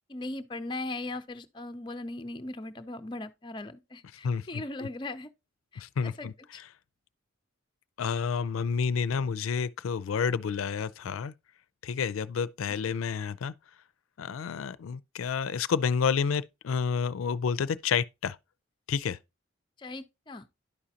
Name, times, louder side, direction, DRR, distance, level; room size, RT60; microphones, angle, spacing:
voice 1, 0.1-5.3 5.7-6.6 19.8-20.4, left 2 dB, 25° left, 0.4 m, -39 dB
voice 2, 4.2-4.9 5.8-6.3 8.0-11.3 11.8-13.5 14.2-18.4 18.9-19.2, left 6 dB, 90° left, 0.4 m, -30 dB
11.0 x 5.0 x 2.8 m
head